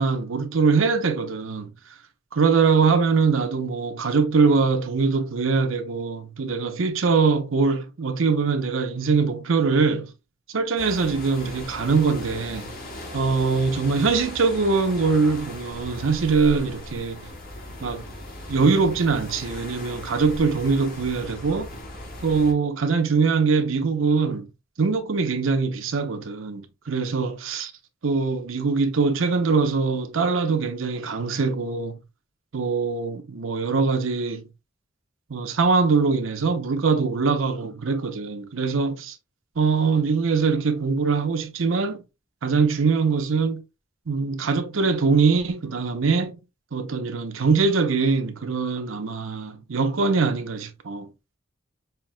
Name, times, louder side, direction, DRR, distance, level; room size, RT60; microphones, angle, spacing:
voice 1, 0.0-1.7 2.3-10.1 10.5-12.7 13.1-17.2 17.8-18.0 18.5-21.7 22.2-24.5 24.8-27.7 28.0-32.0 32.5-34.4 35.3-39.1 39.6-42.0 42.4-43.6 44.1-46.4 46.7-51.1, right 4 dB, 75° right, 0.7 m, -22 dB
sound 1, 10.8-22.5, left 1 dB, 50° left, 1.5 m, -38 dB
5.7 x 2.9 x 2.2 m
head